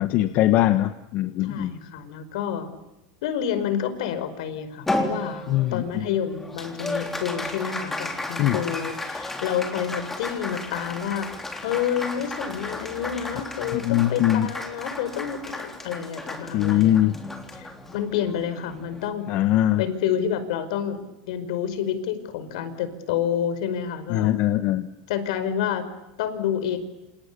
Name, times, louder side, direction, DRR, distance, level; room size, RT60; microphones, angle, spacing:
voice 1, 0.0-1.7 5.5-6.0 8.4-8.6 13.7-14.5 16.5-17.1 19.3-19.8 24.1-24.9, left 13 dB, 40° left, 10 dB, 1.3 m, -21 dB
voice 2, 1.4-2.7 3.2-17.2 17.5-19.2 19.8-24.3 25.1-25.9 26.2-26.8, left 9 dB, 70° left, 12 dB, 5.1 m, -29 dB
Applause, 4.9-19.5, left 2 dB, 5° left, 3.5 m, -34 dB
28.0 x 28.0 x 6.9 m, 0.93 s
supercardioid pair, 160°, 4 cm